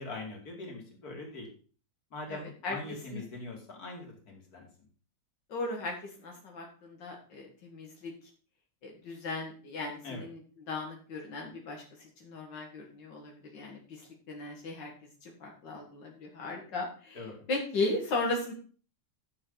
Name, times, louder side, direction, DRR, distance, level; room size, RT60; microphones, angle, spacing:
voice 1, 0.0-1.5 2.1-4.7 10.0-10.3 17.1-17.5, left 2 dB, 55° left, 1 dB, 3.0 m, -42 dB
voice 2, 2.3-2.8 3.1-3.2 5.5-8.1 8.8-10.4 10.7-14.9 15.2-18.5, left 2 dB, 85° left, 1 dB, 2.4 m, -37 dB
12.0 x 7.2 x 3.9 m, 0.39 s
omnidirectional pair, 1.9 m